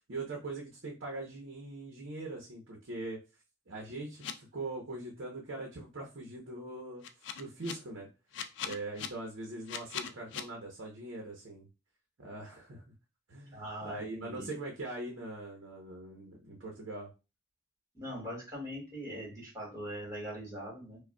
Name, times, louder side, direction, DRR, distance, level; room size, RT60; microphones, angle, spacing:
voice 1, 0.1-3.2 3.7-7.0 7.4-8.1 8.6-11.7 12.2-12.8 13.3-17.1, right 2 dB, 75° right, -1 dB, 0.8 m, -42 dB
sound 1, 4.2-4.3 7.0-7.7 8.3-9.1 9.7-10.4, left 8 dB, 65° left, 0.4 m, -38 dB
voice 2, 13.5-14.5 17.9-21.0, equal, 15° right, -4 dB, 1.8 m, -41 dB
4.9 x 2.3 x 2.2 m, 0.29 s
head